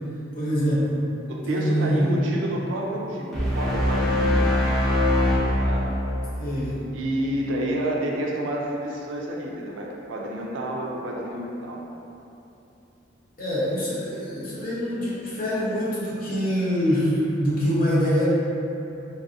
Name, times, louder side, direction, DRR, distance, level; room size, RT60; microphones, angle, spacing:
voice 1, 0.3-1.0 1.5-2.2 6.4-6.8 13.4-18.3, equal, 45° left, -8 dB, 0.7 m, -24 dB
voice 2, 1.3-4.5 5.6-5.9 6.9-11.8, right 1 dB, 70° right, -2 dB, 0.4 m, -29 dB
sound 1, 3.3-6.7, left 1 dB, ahead, 0.6 m, -22 dB
3.2 x 2.5 x 2.6 m, 2.9 s
head